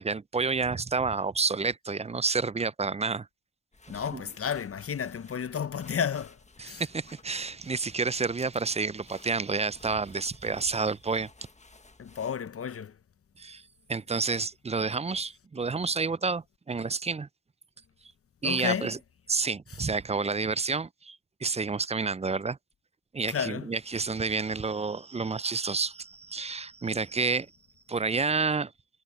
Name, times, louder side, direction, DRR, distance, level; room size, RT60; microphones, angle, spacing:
voice 1, 0.0-3.3 3.9-4.2 6.6-11.3 13.4-13.6 13.9-17.3 18.4-19.0 19.3-22.6 23.1-27.5 27.9-28.7, right 4 dB, 20° right, 0.5 m, -29 dB
sound 1, 3.7-12.4, left 3 dB, 20° left, 1.6 m, -55 dB
voice 2, 3.9-6.4 6.6-6.8 12.0-12.9 18.4-18.9 23.3-23.7, left 7 dB, 40° left, 0.8 m, -32 dB
sound 2, 5.1-7.0 7.2-7.7 7.9-9.7, left 10 dB, 80° left, 2.9 m, -64 dB
supercardioid pair, 50°, 34 cm